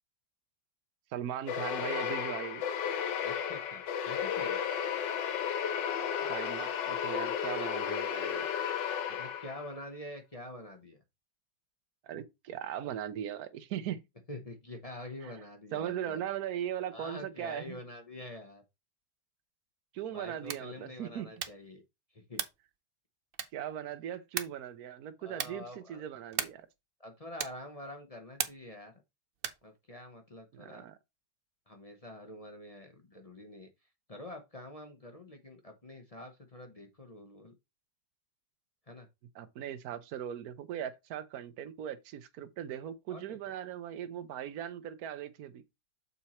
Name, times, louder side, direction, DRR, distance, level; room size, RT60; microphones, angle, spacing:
voice 1, 1.1-2.6 6.3-8.5 12.0-14.0 15.2-15.3 15.7-17.8 19.9-21.3 23.5-26.7 30.5-31.0 39.3-45.6, right 10 dB, 65° right, 1.2 m, -39 dB
sound 1, 1.5-9.8, left 8 dB, 90° left, 1.5 m, -33 dB
voice 2, 3.2-4.6 9.1-11.0 14.3-16.2 16.9-18.6 20.1-21.8 22.1-22.4 25.2-26.0 27.0-28.9 29.6-30.8 31.7-33.7 34.1-37.5 38.9-39.1 43.1-43.5, left 1 dB, 30° left, 0.8 m, -46 dB
sound 2, 20.4-20.8 21.3-21.7 22.3-22.7 23.3-23.7 24.3-24.7 25.3-25.7 26.3-26.7 27.4-27.7 28.4-28.8 29.4-29.7, right 8 dB, 85° right, 0.5 m, -37 dB
6.9 x 4.5 x 4.2 m
omnidirectional pair, 1.9 m